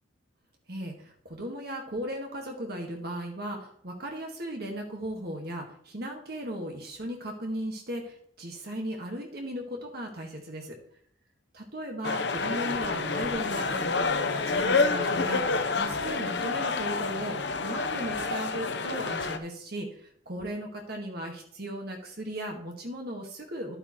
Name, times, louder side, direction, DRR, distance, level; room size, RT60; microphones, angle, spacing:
voice 1, 0.7-10.7 11.5-17.4 17.6-23.8, right 1 dB, 55° right, 1 dB, 1.7 m, -37 dB
sound 1, 12.0-19.4, left 4 dB, 60° left, 0.9 m, -28 dB
12.0 x 8.8 x 3.1 m, 0.65 s
head